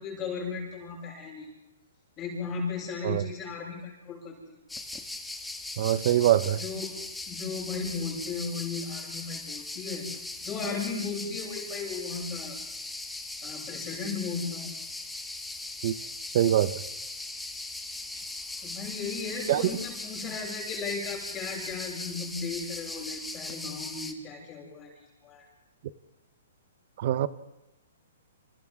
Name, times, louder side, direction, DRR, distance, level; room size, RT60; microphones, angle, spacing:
voice 1, 0.0-1.5 2.2-4.6 6.6-6.9 7.3-10.1 10.4-12.6 13.4-14.7 18.6-24.9 25.2-25.5, left 5 dB, 25° left, 7.7 m, -36 dB
sound 1, 4.7-24.1, left 2 dB, 5° left, 1.6 m, -39 dB
voice 2, 5.8-6.6 15.8-15.9 16.3-16.7 19.5-19.6 27.0-27.3, right 12 dB, 50° right, 0.9 m, -23 dB
29.0 x 28.0 x 3.7 m
hypercardioid pair, 145°, 0 cm